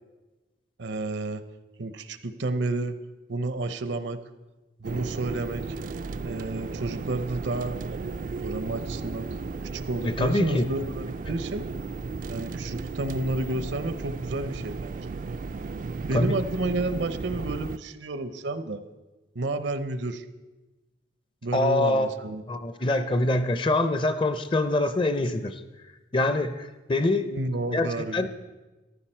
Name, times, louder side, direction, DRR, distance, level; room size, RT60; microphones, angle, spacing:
voice 1, 0.8-1.4 1.8-2.9 3.3-4.2 4.8-5.6 6.2-9.3 9.7-11.6 12.3-15.1 16.0-18.8 19.3-20.2 21.4-22.4 27.3-28.3, right 2 dB, 70° right, 11 dB, 0.7 m, -31 dB
sound 1, 4.8-17.8, right 4 dB, 45° right, 0.3 m, -35 dB
voice 2, 10.0-10.6 16.1-16.4 21.5-22.1 22.5-25.6 26.1-27.3 27.7-28.3, left 2 dB, 25° left, 11 dB, 0.6 m, -24 dB
14.0 x 11.5 x 4.4 m, 1.2 s
head